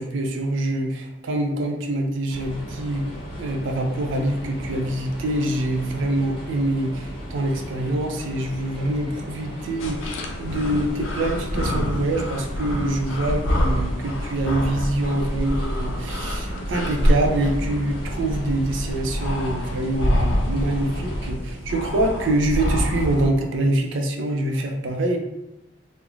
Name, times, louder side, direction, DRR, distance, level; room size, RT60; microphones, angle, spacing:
voice 1, 0.0-3.0 3.4-25.2, right 1 dB, 80° right, 3 dB, 0.4 m, -25 dB
sound 1, 2.3-21.3, equal, 30° left, 0.8 m, -36 dB
sound 2, 9.8-23.3, equal, 85° left, 0.4 m, -26 dB
2.4 x 2.0 x 3.0 m, 1.0 s
head